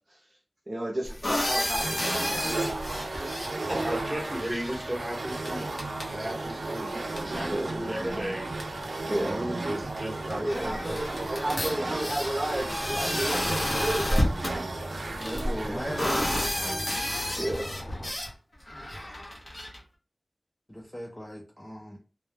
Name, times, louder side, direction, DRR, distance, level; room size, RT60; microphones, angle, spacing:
voice 1, 0.7-2.6 6.9-7.0 7.5-7.7 9.0-9.4 10.3-14.3 14.7-15.1 15.7-15.8 17.4-17.8 19.0-19.3, right 1 dB, 40° right, 0.6 m, -33 dB
sound 1, 1.0-4.9 5.3-5.5 5.8-6.1 7.2-7.3 8.2-8.3 8.6-8.7 10.0-10.1 10.3-14.5 15.2-18.3 18.7-19.8, left 1 dB, 50° left, 0.8 m, -31 dB
sound 2, 1.8-16.9, right 2 dB, 85° right, 0.3 m, -34 dB
voice 2, 3.7-8.7 9.1-11.4, equal, 15° right, 0.9 m, -35 dB
sound 3, 4.1-18.1, equal, 90° left, 0.8 m, -44 dB
voice 3, 15.1-16.8 20.7-22.0, equal, 10° left, 0.5 m, -37 dB
2.2 x 2.2 x 3.2 m
wide cardioid pair, 60°, 0 cm